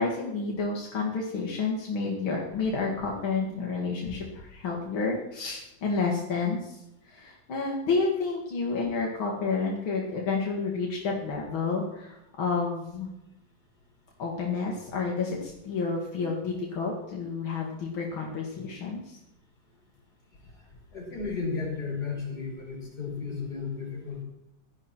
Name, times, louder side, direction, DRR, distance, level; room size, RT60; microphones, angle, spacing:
voice 1, 0.0-6.8 7.0-13.1 14.2-19.2, left 4 dB, 85° left, -1 dB, 2.8 m, -30 dB
voice 2, 20.9-24.2, left 4 dB, 50° left, -2 dB, 5.6 m, -34 dB
17.0 x 12.0 x 4.4 m, 0.87 s
omnidirectional pair, 2.2 m